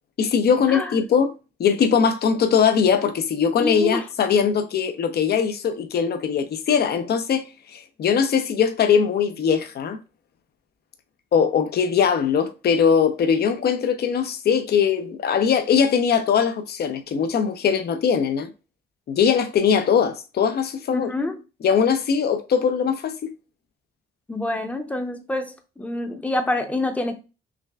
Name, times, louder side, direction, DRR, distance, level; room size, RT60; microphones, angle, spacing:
voice 1, 0.2-1.3 1.6-7.5 7.7-10.0 11.3-18.5 19.1-21.1 21.6-23.3, left 7 dB, 55° left, 0.6 m, -21 dB
voice 2, 3.6-4.0 20.9-21.4 24.3-27.1, left 2 dB, 5° left, 0.7 m, -27 dB
5.8 x 2.3 x 2.3 m
cardioid pair, 90°, 20 cm